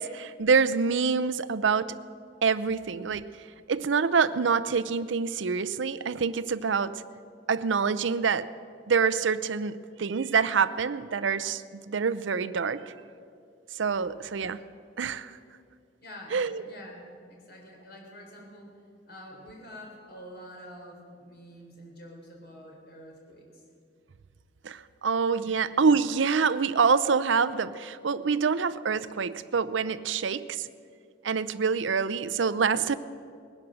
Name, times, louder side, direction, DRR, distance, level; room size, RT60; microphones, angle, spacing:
voice 1, 0.0-2.0 2.4-3.3 3.7-7.0 7.5-8.5 8.9-12.9 13.8-14.6 15.0-15.3 16.3-16.6 24.6-30.7 31.2-32.9, right 5 dB, 80° right, 15 dB, 0.6 m, -26 dB
voice 2, 16.0-18.8 19.1-23.6 25.4-25.6, equal, 55° left, 0 dB, 3.9 m, -47 dB
20.0 x 10.5 x 6.3 m, 2.3 s
head